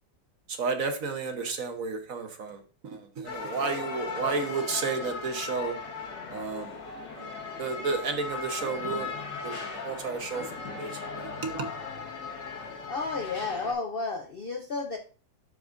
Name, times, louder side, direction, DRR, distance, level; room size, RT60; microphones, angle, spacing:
voice 1, 0.5-5.7 6.3-6.8 7.2-7.3 7.6-9.1 9.4-9.6 9.8-10.5 10.8-11.7, right 4 dB, 55° right, 6 dB, 1.3 m, -32 dB
sound 1, 3.2-13.7, left 4 dB, 75° left, 2.1 m, -37 dB
voice 2, 12.9-15.0, left 3 dB, 60° left, 4 dB, 0.5 m, -32 dB
12.0 x 4.8 x 2.5 m, 0.38 s
omnidirectional pair, 1.9 m